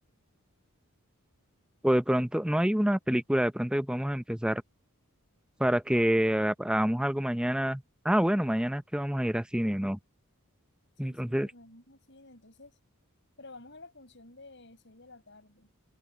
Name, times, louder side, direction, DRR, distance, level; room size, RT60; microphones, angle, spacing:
voice 1, 1.8-4.6 5.6-10.0 11.0-11.5, equal, 5° right, 0.6 m, -27 dB
voice 2, 11.0-12.8 13.4-15.7, left 2 dB, 55° left, 7.3 m, -52 dB
head